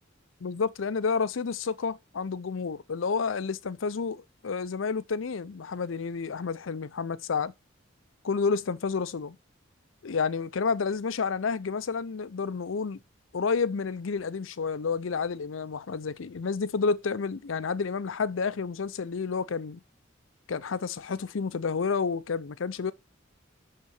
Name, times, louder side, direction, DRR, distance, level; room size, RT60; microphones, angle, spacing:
voice 1, 0.4-7.5 8.2-9.4 10.0-13.0 13.3-19.8 20.5-22.9, left 5 dB, 80° left, 0.6 m, -30 dB
6.7 x 5.6 x 6.5 m
head